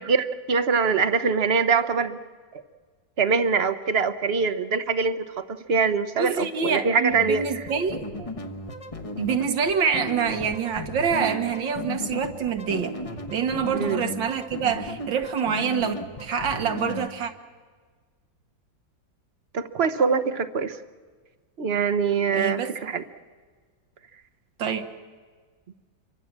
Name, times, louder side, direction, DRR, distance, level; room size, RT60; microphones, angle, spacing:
voice 1, 0.1-2.2 2.5-2.6 3.2-7.6 13.7-14.0 19.5-20.8 21.6-23.0, right 5 dB, 40° right, 11 dB, 1.0 m, -23 dB
voice 2, 6.2-8.3 9.2-13.0 13.3-17.3 22.3-22.7 24.6-24.8, right 6 dB, 80° right, 6 dB, 2.2 m, -26 dB
sound 1, 7.1-17.1, left 2 dB, 25° left, 1.0 m, -35 dB
27.5 x 24.0 x 7.4 m, 1.5 s
omnidirectional pair, 2.0 m